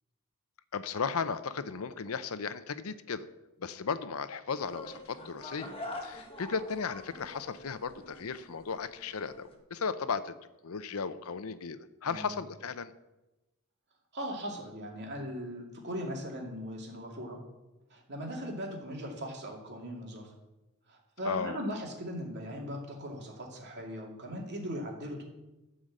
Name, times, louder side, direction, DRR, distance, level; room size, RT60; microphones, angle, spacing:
voice 1, 0.7-3.3 3.6-5.7 6.0-10.3 10.6-12.9 21.2-21.6, left 5 dB, 75° left, 13 dB, 0.6 m, -35 dB
sound 1, 4.5-9.5, left 1 dB, 25° left, 1.3 m, -46 dB
voice 2, 14.1-17.4 17.9-20.3 20.9-25.2, equal, 50° right, -1 dB, 2.6 m, -39 dB
12.0 x 5.1 x 7.5 m, 1.0 s
head